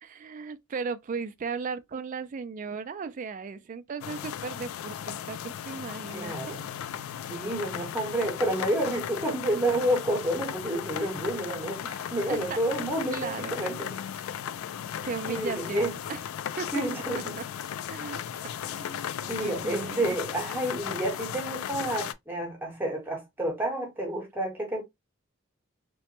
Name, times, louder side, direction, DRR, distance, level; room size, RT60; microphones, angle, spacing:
voice 1, 0.0-6.5 12.3-12.6 13.1-13.8 15.0-16.2 16.6-17.0 17.9-18.2 18.8-19.0 19.4-20.2, right 5 dB, 40° right, 0.3 m, -36 dB
sound 1, 4.0-22.1, left 9 dB, 80° left, 0.3 m, -36 dB
voice 2, 6.1-6.6 7.3-13.9 15.3-16.0 16.7-17.4 19.2-24.8, right 1 dB, 10° right, 0.9 m, -30 dB
3.0 x 2.1 x 2.8 m
head